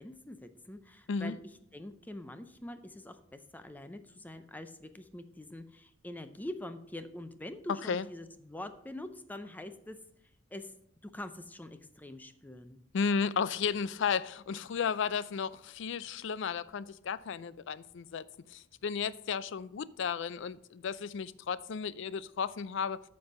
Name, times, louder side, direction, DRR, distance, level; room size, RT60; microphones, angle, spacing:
voice 1, 0.0-1.4 1.7-10.0 10.5-10.7 11.0-12.8, left 1 dB, 10° left, 0.5 m, -44 dB
voice 2, 7.7-8.1 12.9-18.2 18.5-23.0, left 6 dB, 70° left, 0.4 m, -33 dB
8.9 x 5.4 x 5.4 m
head